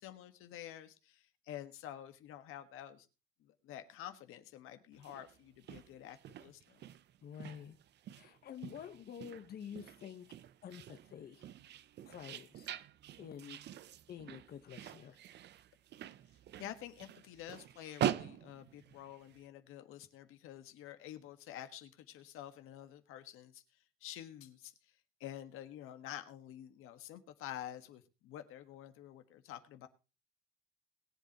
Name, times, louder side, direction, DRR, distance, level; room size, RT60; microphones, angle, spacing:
voice 1, 0.0-3.1 3.4-6.9 16.6-23.6 24.0-24.7 25.2-29.9, left 11 dB, 80° left, 8 dB, 1.6 m, -49 dB
sound 1, 4.9-19.4, right 11 dB, 55° right, 0.7 m, -44 dB
voice 2, 7.2-7.8 8.1-10.3 10.6-11.4 12.0-12.7 13.2-13.6 14.1-15.2, left 8 dB, 50° left, 8 dB, 1.2 m, -48 dB
21.5 x 7.9 x 3.0 m, 0.31 s
cardioid pair, 135°, 21 cm